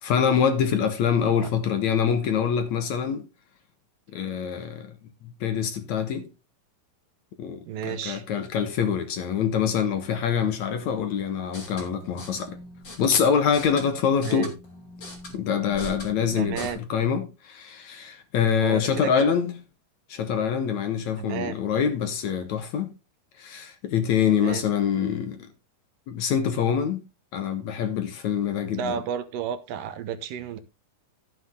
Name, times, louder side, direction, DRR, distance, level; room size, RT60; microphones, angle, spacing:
voice 1, 0.0-3.2 4.1-4.9 5.2-6.3 7.4-12.6 13.0-14.6 15.3-19.5 20.1-22.9 23.4-25.5 26.1-27.0 27.3-28.9, left 7 dB, 60° left, 2.3 m, -25 dB
voice 2, 7.7-8.2 14.2-14.5 16.4-16.8 18.6-19.3 21.2-21.6 24.3-24.7 28.7-30.6, right 8 dB, 75° right, 2.6 m, -32 dB
sound 1, 11.4-16.7, left 1 dB, 30° left, 3.8 m, -42 dB
13.5 x 7.7 x 3.7 m
omnidirectional pair, 4.1 m